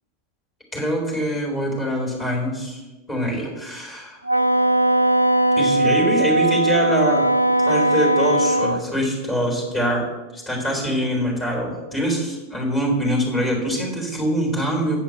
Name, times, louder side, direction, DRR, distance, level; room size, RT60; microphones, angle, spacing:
voice 1, 0.7-2.8 3.1-4.2 5.6-7.3 7.6-10.1 10.3-15.0, equal, 20° left, -3 dB, 3.6 m, -24 dB
Wind instrument woodwind instrument, 4.3-8.8, right 1 dB, 85° right, 0.3 m, -19 dB
9.0 x 5.2 x 6.4 m, 1.1 s
figure-of-eight pair, 90°, 0 cm